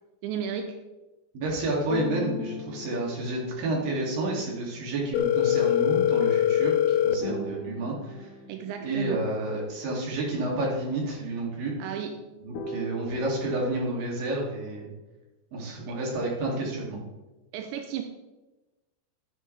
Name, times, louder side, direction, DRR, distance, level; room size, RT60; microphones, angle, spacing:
voice 1, 0.2-0.8 8.5-9.3 11.8-12.2 15.9-16.0 17.5-18.0, right 8 dB, 85° right, 5 dB, 3.1 m, -34 dB
voice 2, 1.3-8.3 8.8-11.7 12.4-14.9 15.5-17.0, right 2 dB, 55° right, -3 dB, 4.3 m, -30 dB
sound 1, 1.9-4.7 7.2-9.5 12.5-14.9, left 4 dB, 75° left, 1.9 m, -39 dB
Telephone, 5.1-7.1, left 11 dB, 90° left, 3.1 m, -22 dB
16.0 x 10.0 x 3.5 m, 1.1 s
omnidirectional pair, 5.1 m